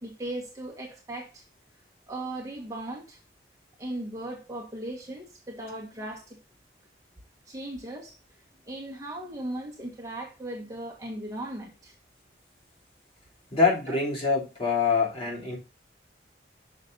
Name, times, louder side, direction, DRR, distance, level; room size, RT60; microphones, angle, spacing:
voice 1, 0.0-1.4 2.1-3.2 3.8-6.4 7.5-8.1 8.7-11.9 13.9-14.0, right 1 dB, 20° right, 1.6 m, -37 dB
voice 2, 13.5-15.6, left 4 dB, 35° left, 3.4 m, -25 dB
6.6 x 6.3 x 4.0 m
head